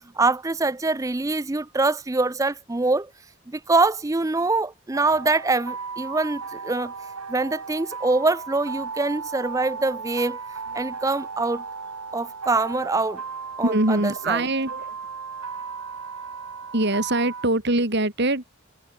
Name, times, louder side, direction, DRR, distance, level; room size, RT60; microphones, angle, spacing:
voice 1, 0.2-3.1 3.5-6.9 7.3-10.4 10.7-11.6 12.1-13.2 13.6-14.5, right 3 dB, 15° right, 0.4 m, -24 dB
sound 1, 4.9-17.5, right 5 dB, 85° right, 2.1 m, -36 dB
voice 2, 13.6-14.9 16.7-18.5, right 2 dB, 50° right, 2.9 m, -23 dB
head